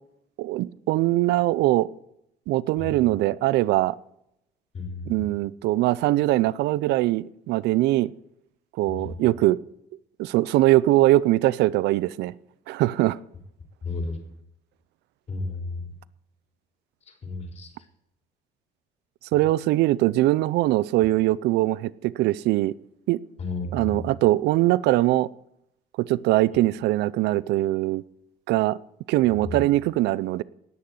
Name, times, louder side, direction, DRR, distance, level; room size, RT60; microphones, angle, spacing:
voice 1, 0.4-1.9 2.5-4.0 5.1-8.1 8.8-9.6 10.2-12.3 12.7-13.2 19.3-22.7 23.1-23.2 23.7-25.3 26.0-28.0 28.5-28.8 29.1-30.4, right 16 dB, 85° right, 0.5 m, -22 dB
voice 2, 4.7-5.1 8.9-9.3 13.8-14.2 15.3-15.9 17.2-17.7 23.4-24.1 29.4-29.6, left 3 dB, 40° left, 4.1 m, -33 dB
18.0 x 6.8 x 9.2 m
cardioid pair, 110°, 17 cm